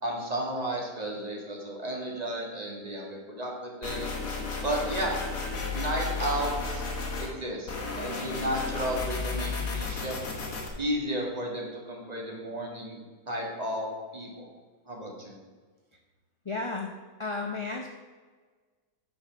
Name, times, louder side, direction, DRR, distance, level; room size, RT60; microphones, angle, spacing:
voice 1, 0.0-4.1 4.6-5.1 5.7-6.9 7.2-10.2 10.8-13.0 13.3-14.5 14.9-15.4, right 1 dB, 25° right, -1 dB, 1.8 m, -33 dB
sound 1, 3.8-7.3 7.7-10.7, left 4 dB, 80° left, 2.1 m, -33 dB
voice 2, 16.4-17.9, left 3 dB, 30° left, 1 dB, 0.5 m, -33 dB
9.5 x 5.6 x 5.9 m, 1.4 s
omnidirectional pair, 1.7 m